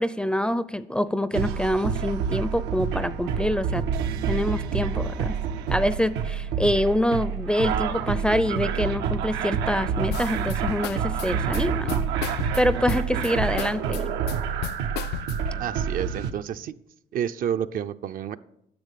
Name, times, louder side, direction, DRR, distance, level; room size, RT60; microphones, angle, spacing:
voice 1, 0.0-3.8 4.3-5.3 5.7-12.0 12.6-14.1, left 1 dB, 5° left, 14 dB, 0.5 m, -25 dB
sound 1, 1.3-16.3, right 7 dB, 90° right, 0.8 m, -28 dB
sound 2, 10.1-15.6, left 14 dB, 75° left, 0.4 m, -34 dB
voice 2, 15.6-16.8 17.1-18.4, right 9 dB, 55° right, 11 dB, 0.6 m, -29 dB
10.5 x 6.7 x 8.3 m, 0.78 s
cardioid pair, 110°, 17 cm